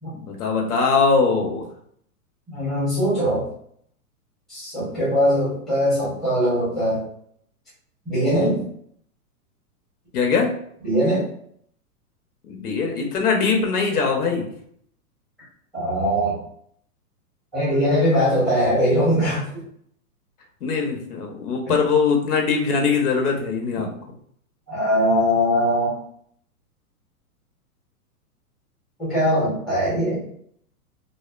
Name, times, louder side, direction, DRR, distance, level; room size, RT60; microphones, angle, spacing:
voice 1, 0.2-1.6 4.8-5.0 8.3-8.6 10.1-10.6 12.5-14.5 20.6-23.9, left 5 dB, 80° left, 2 dB, 0.8 m, -22 dB
voice 2, 2.5-3.4 4.5-7.0 8.1-8.6 10.8-11.2 14.0-14.1 15.7-16.4 17.5-19.5 21.7-21.8 23.7-23.9 24.7-25.9 29.0-30.2, equal, ahead, -9 dB, 0.7 m, -21 dB
2.5 x 2.1 x 2.4 m, 0.66 s
hypercardioid pair, 160°, 45 cm